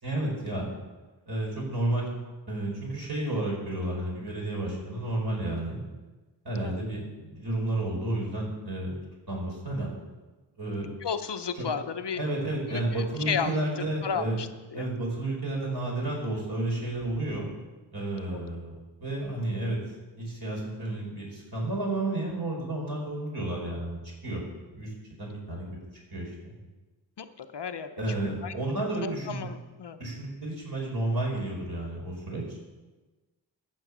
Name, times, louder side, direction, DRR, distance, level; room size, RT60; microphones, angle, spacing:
voice 1, 0.0-0.7 1.3-2.1 2.5-5.8 6.4-8.9 9.3-9.9 10.6-10.9 11.5-11.6 12.2-14.4 14.7-17.5 17.9-18.7 19.0-19.8 20.2-24.0 24.2-24.4 24.7-25.6 26.1-26.6 28.0-29.4 30.0-32.6, right 1 dB, 55° right, -3 dB, 5.1 m, -31 dB
voice 2, 11.0-12.2 12.7-14.9 18.3-18.4 27.2-27.9 28.2-28.5 29.0-30.0, left 6 dB, 65° left, 9 dB, 0.8 m, -34 dB
14.0 x 6.3 x 7.3 m, 1.2 s
wide cardioid pair, 80°, 45 cm